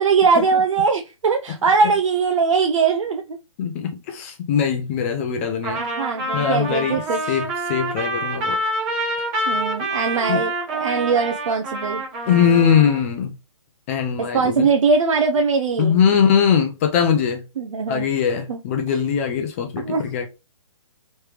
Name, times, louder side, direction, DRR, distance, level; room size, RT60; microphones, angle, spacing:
voice 1, 0.0-3.4 5.8-7.4 9.5-12.0 14.3-16.0 17.6-18.1 18.5-18.6 19.8-20.3, right 5 dB, 70° right, 0.5 m, -21 dB
voice 2, 3.6-5.8 6.3-7.0 7.3-8.6 10.3-10.4 12.3-13.3 13.9-14.7 15.8-17.4 17.9-20.3, left 7 dB, 25° left, 0.5 m, -21 dB
Trumpet, 5.6-13.0, right 1 dB, 25° right, 1.1 m, -27 dB
3.3 x 3.2 x 3.0 m
hypercardioid pair, 150°, 17 cm